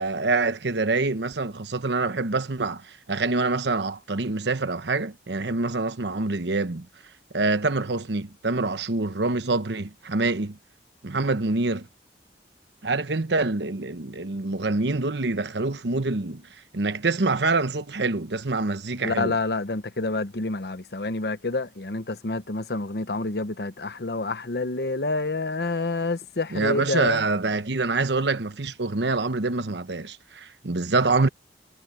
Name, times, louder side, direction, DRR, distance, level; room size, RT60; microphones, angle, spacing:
voice 1, 0.0-6.9 7.3-10.6 11.0-11.9 12.8-16.4 16.7-19.4 26.5-31.3, right 3 dB, 80° right, 1.1 m, -26 dB
voice 2, 19.0-27.2, left 3 dB, 65° left, 0.9 m, -28 dB
head